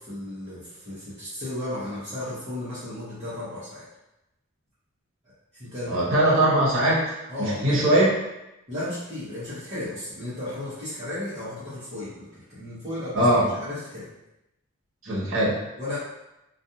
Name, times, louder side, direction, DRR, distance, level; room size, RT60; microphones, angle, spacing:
voice 1, 0.0-3.9 5.5-6.1 7.3-8.0 8.7-14.1 15.8-16.0, left 1 dB, 30° right, -14 dB, 0.9 m, -34 dB
voice 2, 5.9-7.0 7.4-8.1 13.1-13.5 15.0-15.6, right 1 dB, 65° right, -7 dB, 1.0 m, -20 dB
2.5 x 2.3 x 2.7 m, 0.93 s
head